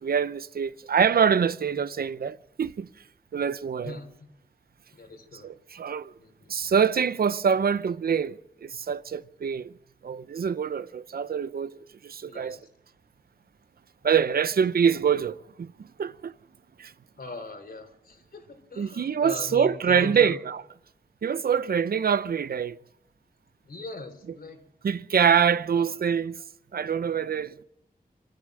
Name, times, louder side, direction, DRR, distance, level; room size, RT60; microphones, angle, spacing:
voice 1, 0.0-2.9 3.3-4.0 5.4-6.1 6.5-9.7 10.0-11.7 12.0-12.6 14.0-16.3 16.8-16.9 18.8-20.6 21.2-22.8 24.8-26.4 26.7-27.5, right 7 dB, 85° right, 0.7 m, -25 dB
voice 2, 3.8-4.3 4.9-5.5 6.2-6.5 12.3-12.7 17.2-20.4 23.6-24.6 25.7-25.8, left 3 dB, 80° left, 3.3 m, -40 dB
26.0 x 13.0 x 7.6 m
wide cardioid pair, 85°, 15 cm